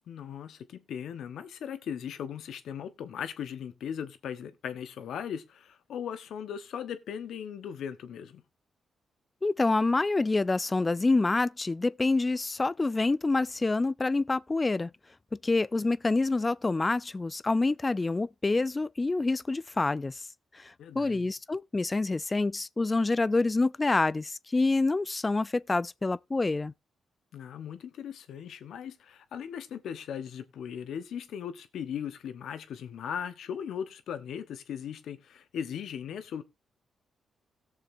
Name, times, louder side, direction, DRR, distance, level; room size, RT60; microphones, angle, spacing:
voice 1, 0.1-8.4 20.8-21.3 27.3-36.4, left 8 dB, 75° left, 1.1 m, -38 dB
voice 2, 9.4-14.9 15.4-20.2 20.5-26.7, left 3 dB, 30° left, 0.4 m, -27 dB
17.5 x 6.7 x 2.6 m
supercardioid pair, 55°, 0 cm